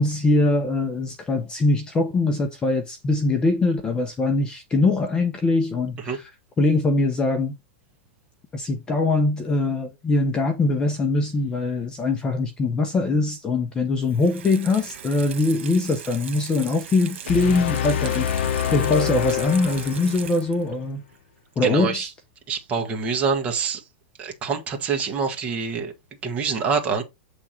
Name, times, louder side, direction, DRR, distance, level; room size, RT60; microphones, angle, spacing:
voice 1, 0.0-6.3 6.6-7.5 8.5-21.0 21.6-22.1, left 2 dB, 15° left, 0.7 m, -22 dB
Water tap faucet / Sink (filling or washing), 14.0-20.8 21.1-21.2, right 9 dB, 80° right, 1.5 m, -39 dB
sound 1, 17.3-20.5, left 10 dB, 70° left, 0.6 m, -26 dB
voice 2, 21.6-22.1 22.5-23.8 24.2-25.9 26.2-27.0, right 5 dB, 20° right, 1.4 m, -25 dB
7.9 x 3.5 x 4.4 m
supercardioid pair, 170°, 6 cm